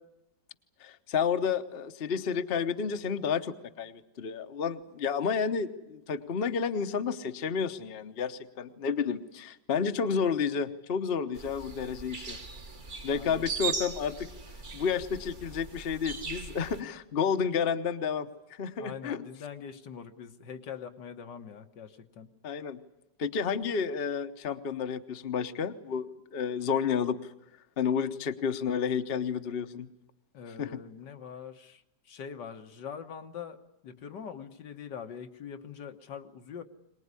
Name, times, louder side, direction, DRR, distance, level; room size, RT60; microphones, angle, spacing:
voice 1, 0.8-12.4 13.0-14.3 14.7-19.2 22.4-22.8 23.2-26.1 26.3-27.2 27.8-29.9 30.6-30.7, left 6 dB, 40° left, 8 dB, 1.0 m, -31 dB
sound 1, 11.3-16.8, right 5 dB, 30° right, 1.3 m, -39 dB
voice 2, 13.1-13.5 18.8-22.3 30.3-36.6, left 7 dB, 80° left, 6 dB, 1.9 m, -43 dB
23.5 x 20.0 x 9.7 m, 0.88 s
omnidirectional pair, 1.9 m